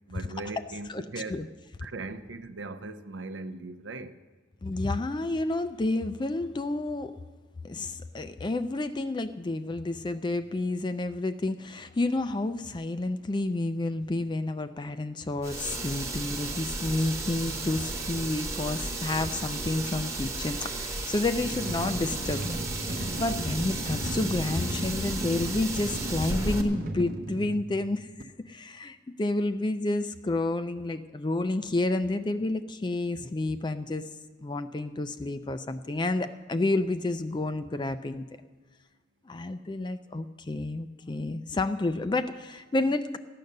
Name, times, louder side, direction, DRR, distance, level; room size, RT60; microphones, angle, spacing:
voice 1, 0.1-1.5 1.8-4.1 23.3-23.5, right 3 dB, 75° right, 0.7 m, -39 dB
voice 2, 4.6-7.1 7.6-22.6 22.9-34.1 34.4-38.2 39.3-43.2, left 2 dB, 25° left, 0.4 m, -30 dB
sound 1, 15.4-26.6, right 2 dB, 15° right, 1.1 m, -34 dB
sound 2, 21.4-28.2, right 1 dB, 45° right, 0.8 m, -36 dB
14.5 x 9.4 x 6.5 m
head